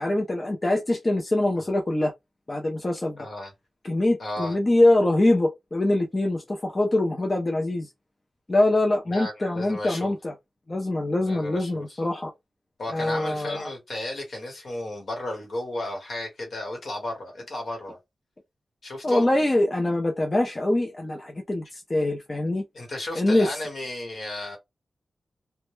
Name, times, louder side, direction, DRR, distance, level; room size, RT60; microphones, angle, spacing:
voice 1, 0.0-2.1 2.5-3.3 3.8-7.9 8.5-10.3 10.7-12.3 12.9-13.7 19.0-22.6 23.1-23.6, left 1 dB, 25° left, 0.4 m, -24 dB
voice 2, 3.2-3.5 4.2-4.6 9.1-10.1 11.2-12.0 12.8-18.0 18.8-19.3 22.7-24.6, left 1 dB, 55° left, 1.1 m, -34 dB
2.2 x 2.1 x 3.0 m
wide cardioid pair, 135°, 0 cm